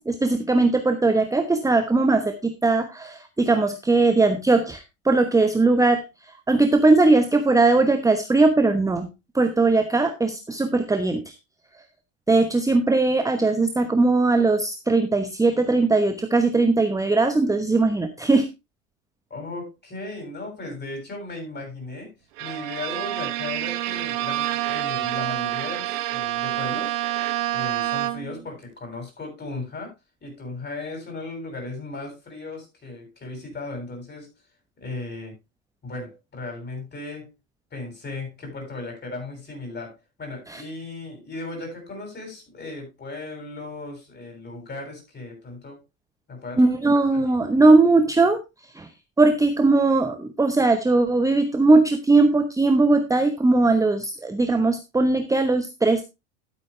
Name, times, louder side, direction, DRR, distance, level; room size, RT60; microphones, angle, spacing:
voice 1, 0.0-6.0 6.5-9.1 9.3-11.3 12.3-18.5 40.5-40.6 46.6-48.4 48.7-48.9 49.2-56.0, right 3 dB, 10° right, 7 dB, 1.0 m, -19 dB
voice 2, 19.3-22.1 22.4-27.0 27.5-29.9 30.2-34.3 34.8-35.4 35.8-37.3 37.7-45.8 46.3-46.7 47.1-47.3, left 2 dB, 25° left, 3 dB, 7.7 m, -36 dB
Bowed string instrument, 22.4-28.5, right 14 dB, 65° right, 1.3 m, -27 dB
12.5 x 8.4 x 3.3 m, 0.24 s
hypercardioid pair, 85°, 39 cm